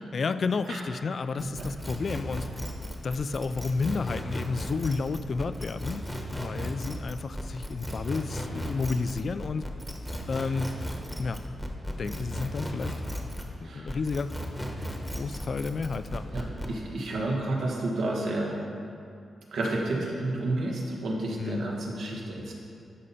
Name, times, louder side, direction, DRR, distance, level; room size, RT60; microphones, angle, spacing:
voice 1, 0.1-2.5 3.0-6.0 6.3-9.7 10.3-10.7 11.2-11.4 12.0-12.9 13.6-14.3 15.1-16.3 21.4-21.7, left 4 dB, 50° left, 12 dB, 0.3 m, -31 dB
sound 1, 1.4-13.6 13.9-16.7, equal, ahead, 1.0 m, -35 dB
voice 2, 16.3-18.6 19.5-22.5, right 2 dB, 85° right, -1 dB, 1.5 m, -30 dB
12.5 x 5.6 x 4.2 m, 2.5 s
wide cardioid pair, 125°, 0 cm